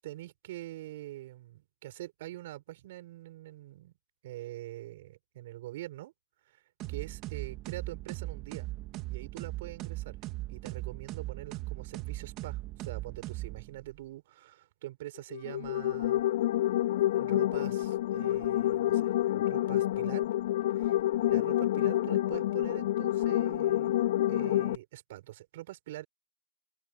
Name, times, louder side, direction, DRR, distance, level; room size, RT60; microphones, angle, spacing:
voice 1, 0.0-3.9 4.2-6.1 6.5-6.6 6.9-8.7 9.1-10.2 10.5-16.2 17.1-20.3 21.2-24.0 24.3-26.0, right 15 dB, 45° right, 7.4 m, -44 dB
sound 1, 6.8-14.0, right 18 dB, 25° right, 2.7 m, -39 dB
sound 2, 15.3-24.7, left 13 dB, 50° left, 4.0 m, -28 dB
open air
hypercardioid pair, 160°, 0 cm